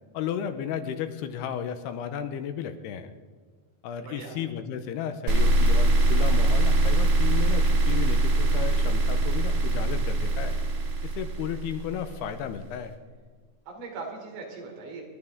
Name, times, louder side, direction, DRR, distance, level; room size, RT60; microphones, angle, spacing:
voice 1, 0.1-3.1 3.8-10.6 11.0-12.9, left 8 dB, 80° left, 9 dB, 2.7 m, -34 dB
sound 1, 5.3-12.4, right 2 dB, 60° right, 2.2 m, -22 dB
voice 2, 8.9-9.3 13.7-15.0, right 4 dB, 80° right, 0 dB, 5.4 m, -40 dB
27.0 x 12.0 x 3.6 m, 1.5 s
omnidirectional pair, 5.0 m